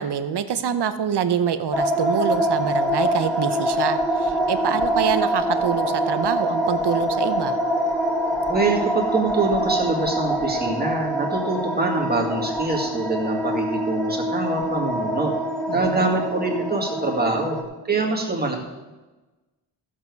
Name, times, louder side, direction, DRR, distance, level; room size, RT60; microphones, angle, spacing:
voice 1, 0.0-7.6 15.7-16.2, right 8 dB, 65° right, 11 dB, 0.8 m, -25 dB
sound 1, 1.7-17.6, equal, ahead, 1.7 m, -24 dB
voice 2, 8.5-18.5, right 3 dB, 20° right, -1 dB, 2.1 m, -25 dB
14.5 x 7.4 x 4.7 m, 1.2 s
wide cardioid pair, 135°, 43 cm